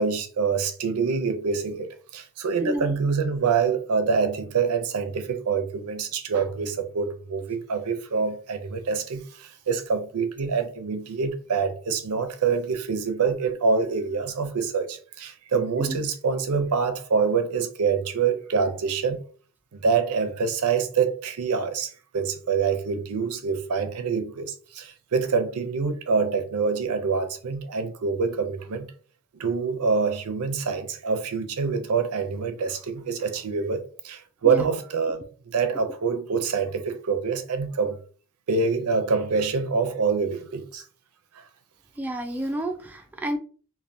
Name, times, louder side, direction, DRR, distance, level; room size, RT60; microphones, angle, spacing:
voice 1, 0.0-19.2 19.7-28.9 29.3-35.2 35.5-38.0 38.5-40.8 41.3-41.4, right 5 dB, 85° right, 0.5 m, -26 dB
voice 2, 2.6-3.0 15.8-16.0 34.4-34.6 42.0-43.4, equal, 10° right, 0.3 m, -30 dB
3.3 x 2.2 x 2.6 m
head